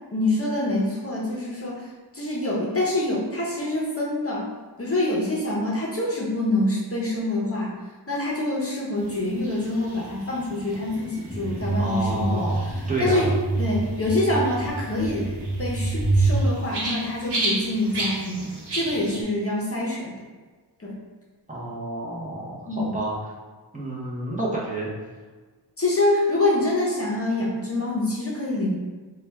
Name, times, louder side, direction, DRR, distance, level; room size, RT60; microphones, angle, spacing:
voice 1, 0.1-4.5 4.8-7.7 8.1-13.3 13.6-15.3 15.6-20.2 20.8-20.9 22.7-23.0 25.8-28.8, left 1 dB, 35° left, -4 dB, 0.7 m, -26 dB
sound 1, 9.0-19.2, right 2 dB, 70° right, 0.8 m, -35 dB
sound 2, 11.3-16.3, right 2 dB, 10° left, 1.5 m, -26 dB
voice 2, 11.8-13.3 21.5-23.1 23.7-24.9, right 1 dB, 20° right, -6 dB, 0.8 m, -30 dB
4.2 x 2.3 x 3.3 m, 1.4 s
wide cardioid pair, 120°, 42 cm